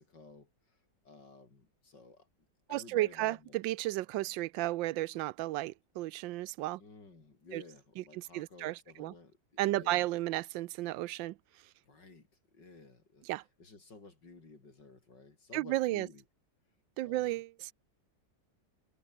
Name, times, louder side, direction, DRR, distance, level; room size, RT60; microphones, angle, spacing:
voice 1, 0.0-2.3 2.7-3.6 6.8-10.1 11.8-13.3 13.6-16.2 17.0-17.3, left 3 dB, 65° left, 5.2 m, -54 dB
voice 2, 2.7-6.8 7.5-7.6 8.2-9.1 9.6-11.4 13.3-13.4 15.5-16.1 17.0-17.7, right 16 dB, 85° right, 1.3 m, -33 dB
omnidirectional pair, 2.0 m